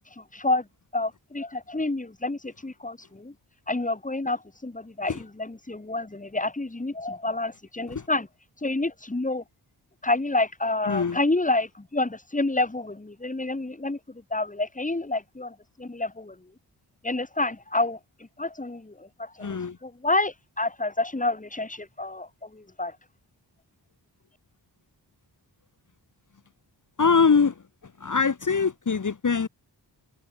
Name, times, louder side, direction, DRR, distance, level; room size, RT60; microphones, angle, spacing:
voice 1, 0.2-0.6 0.9-3.3 3.7-8.3 8.6-9.4 10.0-14.0 14.3-16.3 17.0-18.0 18.4-19.6 19.8-22.3 22.5-22.9, left 2 dB, 20° left, 2.3 m, -28 dB
voice 2, 10.8-11.2 19.4-19.8 27.0-29.5, left 5 dB, 45° left, 1.6 m, -23 dB
cardioid pair, 50°, 42 cm